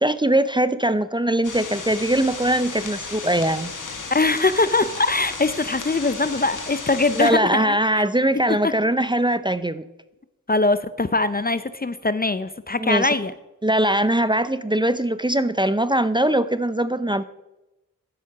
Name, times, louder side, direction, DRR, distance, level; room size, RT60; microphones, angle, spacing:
voice 1, 0.0-3.7 7.1-9.9 12.8-13.1 13.6-17.2, right 1 dB, 15° right, 13 dB, 0.6 m, -21 dB
sound 1, 1.4-7.3, left 4 dB, 60° left, 2.2 m, -34 dB
voice 2, 4.1-8.0 8.6-8.7 10.5-13.3, left 3 dB, 25° left, 14 dB, 0.6 m, -22 dB
11.0 x 8.5 x 6.0 m, 0.98 s
cardioid pair, 50°, 35 cm